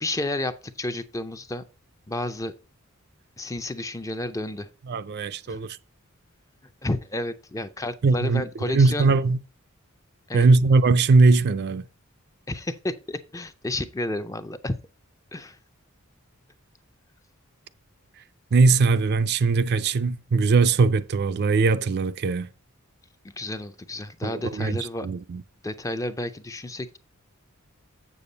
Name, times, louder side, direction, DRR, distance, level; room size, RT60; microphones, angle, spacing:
voice 1, 0.0-1.6 2.1-2.5 3.4-4.7 5.5-5.6 6.8-9.1 10.3-10.5 12.5-14.7 15.3-15.6 23.2-25.1 25.6-27.0, left 1 dB, 15° left, 0.5 m, -31 dB
voice 2, 4.9-5.8 8.0-9.4 10.3-11.8 18.5-22.5 24.2-25.4, right 3 dB, 50° right, 0.4 m, -20 dB
7.4 x 7.0 x 4.0 m
head